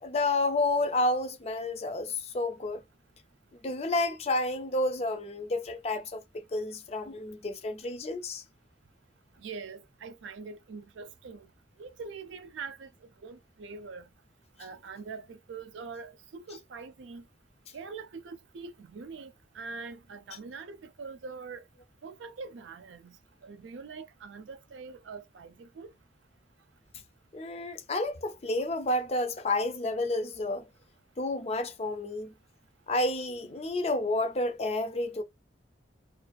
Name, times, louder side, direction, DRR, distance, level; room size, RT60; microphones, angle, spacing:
voice 1, 0.0-2.8 3.6-8.4 27.3-30.7 31.2-32.3 32.9-35.2, left 2 dB, 35° left, 0.4 m, -30 dB
voice 2, 9.4-11.5 11.8-12.9 13.2-14.1 14.6-17.2 17.7-21.6 22.0-23.2 23.4-25.9, right 4 dB, 85° right, 0.4 m, -43 dB
2.5 x 2.3 x 2.3 m
head